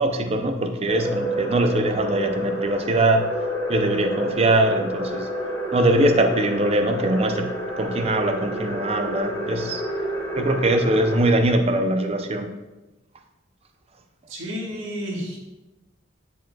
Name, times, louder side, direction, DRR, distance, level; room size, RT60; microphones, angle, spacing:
voice 1, 0.0-3.3 3.7-5.3 5.7-7.5 7.8-9.8 10.4-12.5, right 1 dB, 30° right, 6 dB, 0.5 m, -22 dB
sound 1, 0.9-11.2, equal, 25° left, 1.5 m, -29 dB
voice 2, 14.3-15.4, equal, 80° right, -3 dB, 1.6 m, -31 dB
9.2 x 5.1 x 2.3 m, 1.1 s
head